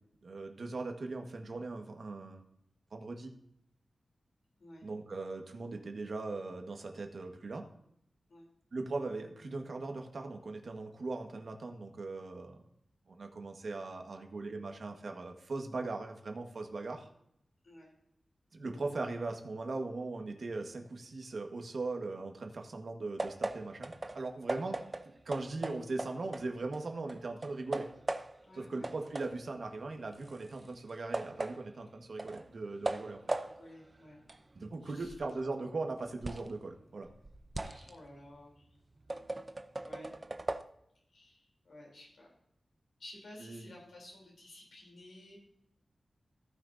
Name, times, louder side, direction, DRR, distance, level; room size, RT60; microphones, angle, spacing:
voice 1, 0.2-2.4 2.9-3.3 4.8-7.6 8.7-12.6 13.1-17.1 18.5-24.8 25.3-27.9 28.5-33.2 34.6-37.1 43.4-43.7, right 3 dB, 60° right, 3 dB, 1.6 m, -39 dB
sound 1, 23.2-26.8 27.1-28.5 28.8-36.6 37.0-40.6, right 2 dB, 30° right, 0.7 m, -40 dB
voice 2, 28.4-28.9 33.3-34.2 34.8-35.1 37.6-38.7 39.8-40.2 41.1-42.3 43.0-45.4, left 1 dB, 85° left, -2 dB, 3.5 m, -53 dB
18.0 x 6.1 x 2.8 m, 0.76 s
wide cardioid pair, 100°, 0 cm